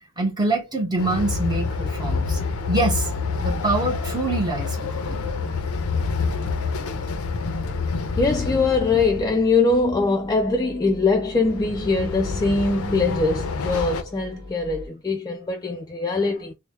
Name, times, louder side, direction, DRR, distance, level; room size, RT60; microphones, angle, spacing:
voice 1, 0.2-2.4 2.7-3.1 3.4-5.4, right 2 dB, 20° right, 0.6 m, -25 dB
sound 1, 0.9-14.9, left 1 dB, 50° right, 1.0 m, -42 dB
Train, 1.0-9.5 11.3-14.0, left 4 dB, 80° left, 0.5 m, -27 dB
voice 2, 8.2-16.5, left 3 dB, 20° left, 0.3 m, -22 dB
3.3 x 2.0 x 3.1 m
head